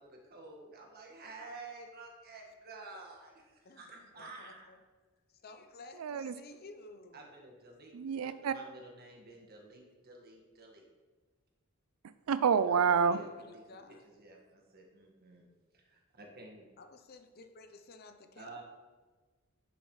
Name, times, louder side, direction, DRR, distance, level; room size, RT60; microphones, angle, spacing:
voice 1, 0.0-4.7 7.1-10.8 12.7-12.8 13.0-15.5 15.7-16.7 18.4-18.6, right 3 dB, 50° right, 1.7 m, -51 dB
voice 2, 3.6-4.8 5.3-7.3 13.0-14.1 16.8-18.6, left 3 dB, 50° left, 0.7 m, -54 dB
voice 3, 6.0-6.3 7.9-8.5 12.3-13.2, right 6 dB, 85° right, 0.4 m, -28 dB
10.5 x 7.0 x 3.2 m
head